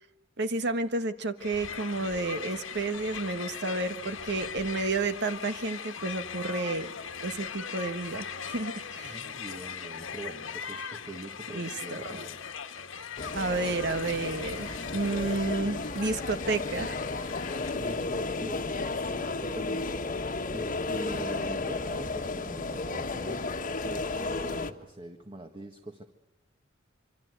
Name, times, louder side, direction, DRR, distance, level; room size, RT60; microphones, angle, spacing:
voice 1, 0.4-6.9 7.2-9.2 11.5-12.0 13.3-17.0, right 3 dB, 60° right, 9 dB, 1.5 m, -31 dB
Crowd, 1.4-18.1, left 6 dB, 80° left, 1.7 m, -40 dB
voice 2, 9.0-12.4 17.8-26.0, right 1 dB, 25° right, 5 dB, 1.6 m, -43 dB
sound 1, 13.2-24.7, left 3 dB, 40° left, 1.5 m, -33 dB
27.0 x 24.5 x 8.1 m, 0.91 s
head